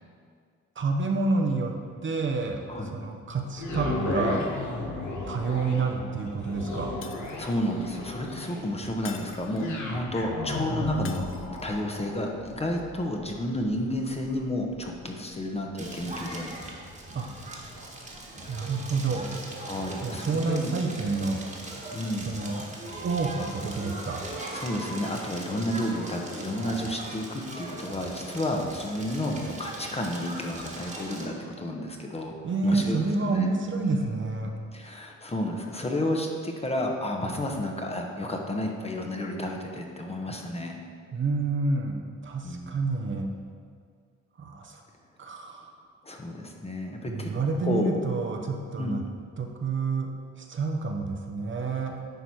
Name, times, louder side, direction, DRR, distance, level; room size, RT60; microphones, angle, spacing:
voice 1, 0.8-1.8 2.0-2.6 2.9-4.4 5.3-7.0 17.1-17.3 18.5-19.3 20.0-21.4 21.7-21.8 22.2-22.6 23.0-24.3 32.4-34.5 41.1-42.0 42.2-43.3 44.4-44.8 45.2-45.7 47.1-49.0 49.4-50.1 50.4-51.9, right 4 dB, 40° right, 3 dB, 0.8 m, -28 dB
sound 1, 3.5-17.7 18.3-18.4, left 2 dB, 75° left, 1.5 m, -35 dB
Shatter, 7.0-7.7 9.0-9.9 11.1-11.8, left 6 dB, 45° left, 0.6 m, -46 dB
voice 2, 7.4-16.5 19.6-20.7 21.9-22.3 24.5-32.3 32.6-33.5 33.8-34.2 34.7-40.8 42.4-42.7 46.0-47.3 47.6-48.0 48.8-49.0, left 1 dB, 20° left, 1 dB, 1.0 m, -31 dB
Crackle, 15.8-31.2, right 2 dB, 25° right, 1.5 m, -39 dB
10.5 x 4.0 x 4.6 m, 2.1 s
cardioid pair, 90°, 30 cm